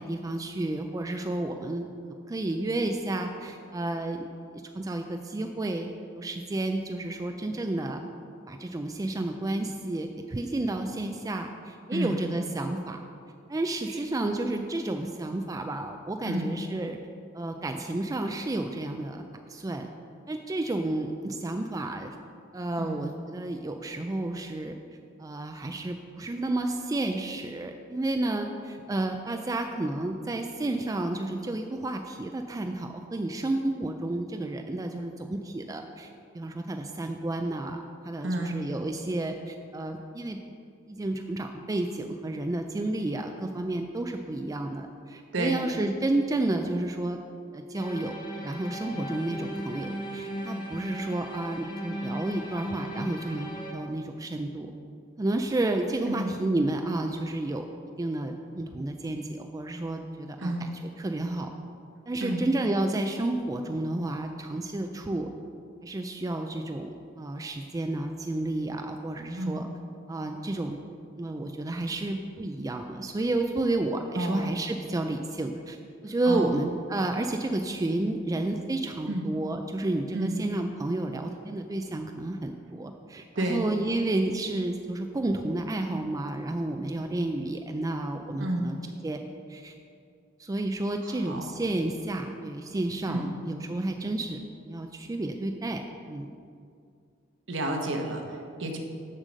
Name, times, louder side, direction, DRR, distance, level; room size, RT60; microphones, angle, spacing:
voice 1, 0.0-1.9 2.3-4.3 4.5-8.0 8.5-13.0 13.5-17.0 17.3-19.2 19.5-19.9 20.3-22.2 22.5-24.7 25.2-36.1 36.3-40.4 40.9-47.2 47.5-48.1 48.4-54.7 55.2-57.7 58.0-60.7 61.0-61.5 62.1-65.3 65.8-69.7 70.1-70.8 71.2-75.8 76.0-88.8 89.0-89.2 89.5-89.8 90.4-95.8 96.1-96.3, right 2 dB, 15° right, 5 dB, 0.3 m, -31 dB
voice 2, 38.2-38.6 45.3-45.6 56.0-56.3 60.4-60.7 62.2-62.4 69.4-69.6 74.2-74.5 76.2-76.7 79.1-79.3 80.1-80.4 83.3-83.6 88.4-88.7 91.0-91.5 93.1-93.3 97.5-98.8, right 1 dB, 65° right, 2 dB, 1.1 m, -30 dB
sound 1, 47.7-53.7, equal, 25° left, 0.9 m, -37 dB
7.4 x 6.7 x 6.2 m, 2.4 s
head